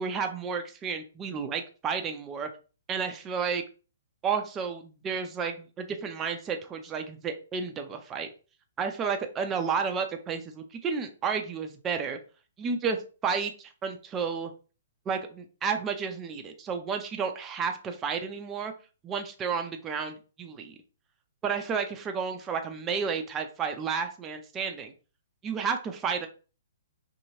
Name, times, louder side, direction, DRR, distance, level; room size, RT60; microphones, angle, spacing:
voice 1, 0.0-2.5 2.9-3.6 4.2-8.3 8.8-12.2 12.6-14.5 15.1-18.7 19.0-20.7 21.4-24.9 25.4-26.3, right 6 dB, 20° right, 5 dB, 0.5 m, -31 dB
2.8 x 2.6 x 2.8 m, 0.35 s
figure-of-eight pair, 125°, 0 cm